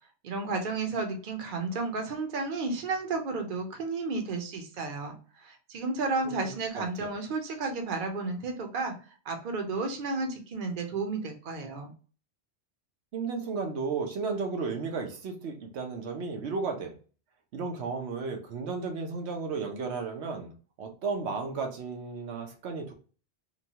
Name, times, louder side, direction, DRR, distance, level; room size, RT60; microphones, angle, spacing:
voice 1, 0.2-8.9 9.2-11.9, right 3 dB, 55° right, 4 dB, 0.8 m, -32 dB
voice 2, 6.4-7.1 13.1-16.9 17.5-20.5 20.8-22.9, right 4 dB, 85° right, 4 dB, 1.0 m, -34 dB
2.9 x 2.2 x 2.7 m, 0.38 s
omnidirectional pair, 1.1 m